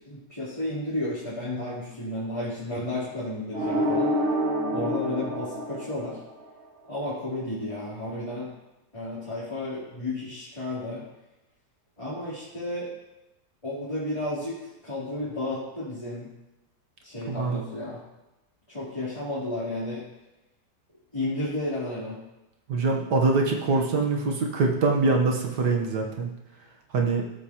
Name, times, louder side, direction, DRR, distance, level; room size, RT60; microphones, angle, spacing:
voice 1, 0.0-4.1 4.7-6.2 6.9-8.5 8.9-11.0 12.0-12.9 13.6-16.3 17.0-18.0 18.7-20.0 21.1-22.2, left 1 dB, 20° left, -11 dB, 3.4 m, -32 dB
sound 1, 3.5-6.5, equal, 55° right, 3.9 m, -27 dB
voice 2, 17.3-17.6 22.7-26.3 26.9-27.3, right 3 dB, 75° right, 1 dB, 1.8 m, -24 dB
17.0 x 8.4 x 3.0 m, 0.98 s
omnidirectional pair, 1.8 m